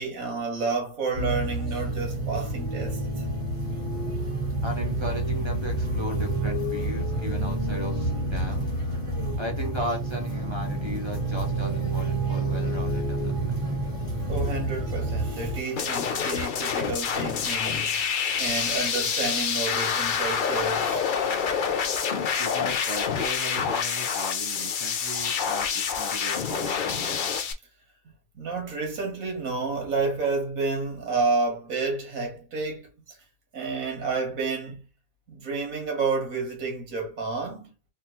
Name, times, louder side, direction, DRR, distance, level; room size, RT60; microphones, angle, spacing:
voice 1, 0.0-3.3 14.3-21.0 28.4-33.2 33.5-34.8 35.3-37.7, right 4 dB, 85° right, 1.7 m, -30 dB
sound 1, 1.1-15.6, right 2 dB, 25° right, 1.5 m, -28 dB
voice 2, 4.6-8.8 9.4-13.6 22.4-27.3, equal, 50° right, 0.3 m, -36 dB
sound 2, 15.8-27.5, left 7 dB, 60° left, 0.5 m, -27 dB
3.6 x 2.4 x 2.8 m
omnidirectional pair, 1.4 m